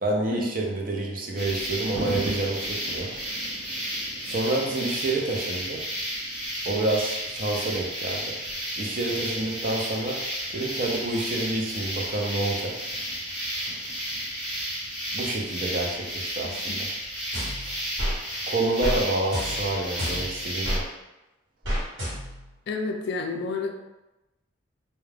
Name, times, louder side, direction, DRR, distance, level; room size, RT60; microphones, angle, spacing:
voice 1, 0.0-3.1 4.2-5.8 6.7-8.3 8.8-10.2 10.5-12.7 15.1-16.9 17.6-17.8 18.5-20.8, right 2 dB, 45° right, -1 dB, 0.5 m, -28 dB
sound 1, 1.3-20.8, equal, 5° right, 1.2 m, -32 dB
voice 2, 16.4-16.8 22.7-23.7, left 4 dB, 55° left, 4 dB, 0.3 m, -30 dB
sound 2, 17.3-18.2 18.8-19.0 19.3-20.8 21.6-22.5, equal, 65° right, 1.1 m, -30 dB
2.3 x 2.1 x 3.2 m, 0.98 s
head